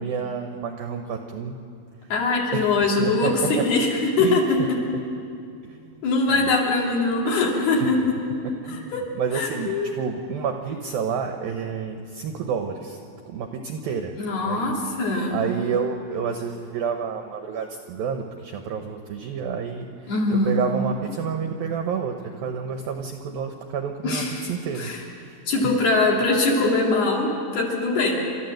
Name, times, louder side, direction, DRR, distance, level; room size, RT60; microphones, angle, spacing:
voice 1, 0.0-1.6 2.5-2.7 3.0-3.7 4.2-4.7 4.9-5.0 5.6-6.5 7.8-7.9 8.4-13.0 13.3-14.2 14.4-14.7 15.3-24.9 25.2-25.4, right 6 dB, 80° right, 5 dB, 2.1 m, -29 dB
voice 2, 2.1-4.6 6.0-8.0 8.7-9.0 9.3-9.9 14.2-15.4 20.1-20.6 24.0-24.5 24.8-25.0 25.5-28.2, left 3 dB, 60° left, -2 dB, 4.5 m, -22 dB
29.0 x 13.0 x 7.8 m, 2.4 s
omnidirectional pair, 5.4 m